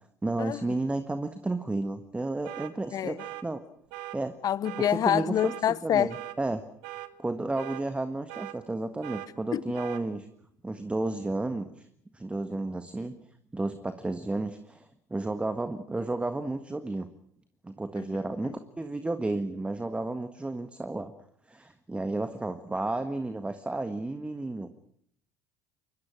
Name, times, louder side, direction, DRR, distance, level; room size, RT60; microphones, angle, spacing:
voice 1, 0.2-3.6 4.1-4.3 4.9-5.5 5.8-6.6 7.2-10.3 10.6-11.8 12.1-13.2 13.5-17.1 17.6-21.1 21.5-24.7, right 2 dB, 15° right, 1.6 m, -32 dB
sound 1, 2.4-2.7 3.2-3.4 3.9-4.2 4.6-4.9 5.4-5.6 6.1-6.4 6.8-7.1 7.6-7.8 8.3-8.6 9.0-9.3 9.7-10.0, right 17 dB, 70° right, 1.4 m, -40 dB
voice 2, 4.4-6.1 9.5-9.6 18.0-18.1 18.4-18.5, left 10 dB, 45° left, 0.9 m, -26 dB
25.0 x 22.0 x 6.3 m
hypercardioid pair, 70°, 9 cm